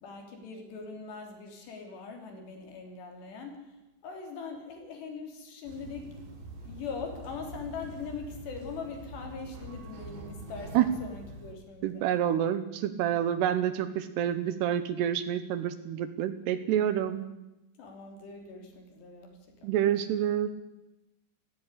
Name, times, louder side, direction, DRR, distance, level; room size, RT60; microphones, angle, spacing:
voice 1, 0.0-3.7 4.0-6.2 6.7-12.0 17.8-19.7, left 4 dB, 65° left, 3 dB, 5.2 m, -41 dB
sound 1, 5.7-11.5, right 1 dB, 60° right, 4.9 m, -45 dB
voice 2, 11.8-17.3 19.6-20.5, right 10 dB, 75° right, 12 dB, 2.8 m, -28 dB
17.5 x 15.0 x 9.9 m, 0.96 s
omnidirectional pair, 5.2 m